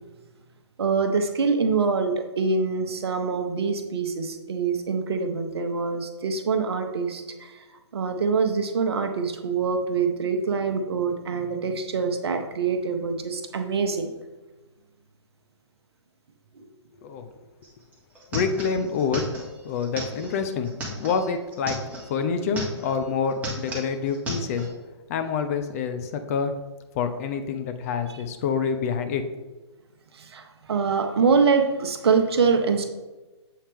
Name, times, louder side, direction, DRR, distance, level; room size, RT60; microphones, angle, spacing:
voice 1, 0.8-7.6 7.9-14.1 16.6-16.7 30.1-32.9, right 5 dB, 60° right, 6 dB, 0.8 m, -25 dB
sound 1, 17.6-17.7 17.9-22.1 22.4-23.0 23.3-24.7, equal, 10° right, 1.2 m, -34 dB
voice 2, 18.3-19.3 19.6-21.8 22.1-24.7 25.1-26.5 26.9-29.2, left 6 dB, 30° left, 8 dB, 0.5 m, -27 dB
7.5 x 4.2 x 3.5 m, 1.2 s
figure-of-eight pair, 135°, 15 cm